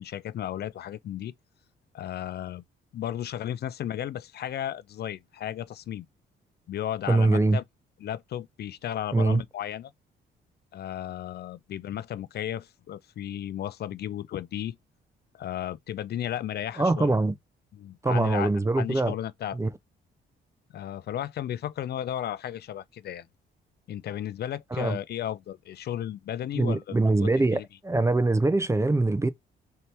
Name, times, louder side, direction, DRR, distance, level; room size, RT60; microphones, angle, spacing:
voice 1, 0.0-1.3 1.9-2.6 2.9-6.0 6.7-7.6 8.0-9.9 10.7-14.8 15.3-17.1 17.7-18.5 18.7-19.6 20.7-23.3 23.9-27.6, left 11 dB, 55° left, 0.4 m, -34 dB
voice 2, 7.1-7.6 9.1-9.4 16.8-17.3 18.0-19.1 19.5-19.7 24.7-25.0 26.5-29.3, right 2 dB, 15° right, 0.4 m, -23 dB
4.0 x 2.9 x 3.3 m
cardioid pair, 90°, 20 cm